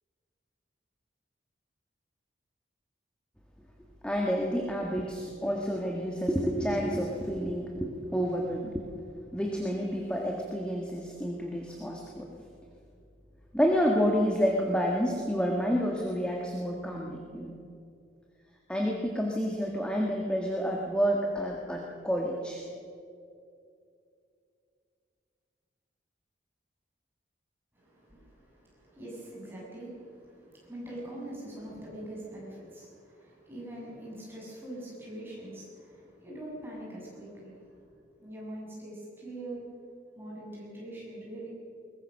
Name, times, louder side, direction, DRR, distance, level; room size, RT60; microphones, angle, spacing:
voice 1, 4.0-8.8 9.3-12.3 13.5-17.6 18.7-22.6, equal, 5° left, -1 dB, 1.7 m, -29 dB
voice 2, 27.7-37.9 38.2-39.6 40.2-41.5, right 1 dB, 10° right, -6 dB, 7.2 m, -43 dB
22.0 x 20.0 x 6.5 m, 2.5 s
head